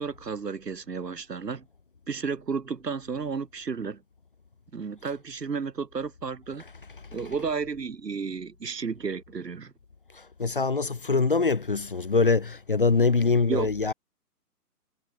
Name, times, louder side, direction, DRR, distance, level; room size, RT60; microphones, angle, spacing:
voice 1, 0.0-1.6 2.1-4.0 4.7-6.6 7.1-9.7 13.5-13.7, right 5 dB, 85° right, 5.9 m, -32 dB
voice 2, 10.1-13.9, left 4 dB, 40° left, 0.4 m, -24 dB
hypercardioid pair, 160°, 47 cm